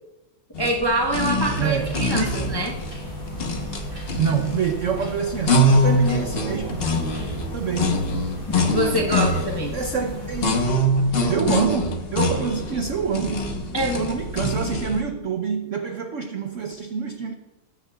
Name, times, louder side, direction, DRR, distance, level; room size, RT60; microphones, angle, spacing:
sound 1, 0.6-15.0, equal, 40° left, 0.9 m, -24 dB
voice 1, 0.6-2.7 8.7-9.7 13.7-14.0, right 1 dB, 25° left, 0 dB, 0.5 m, -24 dB
voice 2, 1.6-2.5 4.2-6.9 7.5-8.0 8.9-10.6 11.3-13.5 13.9-17.3, right 6 dB, 70° right, 5 dB, 0.7 m, -27 dB
sound 2, 1.7-10.6, equal, 15° right, 2.4 m, -37 dB
14.0 x 9.6 x 2.3 m, 1.0 s
omnidirectional pair, 2.1 m